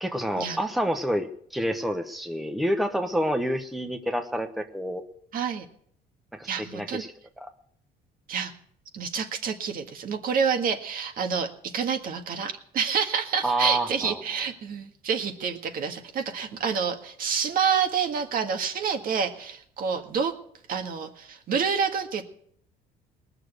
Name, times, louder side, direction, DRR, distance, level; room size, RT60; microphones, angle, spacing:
voice 1, 0.0-5.0 6.3-7.5 13.4-14.2, equal, ahead, 6 dB, 1.1 m, -28 dB
voice 2, 5.3-5.7 6.4-7.0 8.3-8.5 8.9-20.3 20.7-22.2, right 6 dB, 55° right, 5 dB, 1.8 m, -28 dB
19.5 x 6.8 x 7.9 m, 0.65 s
cardioid pair, 110°, 17 cm